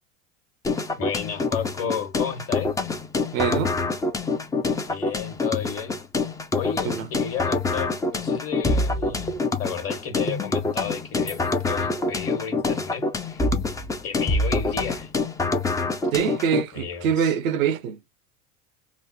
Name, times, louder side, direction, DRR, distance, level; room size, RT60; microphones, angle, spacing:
sound 1, 0.6-16.6, left 3 dB, 10° left, 0.4 m, -26 dB
voice 1, 1.0-2.7 4.8-6.0 6.5-13.4 14.0-15.1 16.7-17.3, left 7 dB, 35° left, 1.2 m, -33 dB
voice 2, 3.3-3.7 6.8-7.1 16.1-18.0, right 8 dB, 80° right, 0.7 m, -24 dB
4.0 x 2.0 x 2.7 m
hypercardioid pair, 80°, 40 cm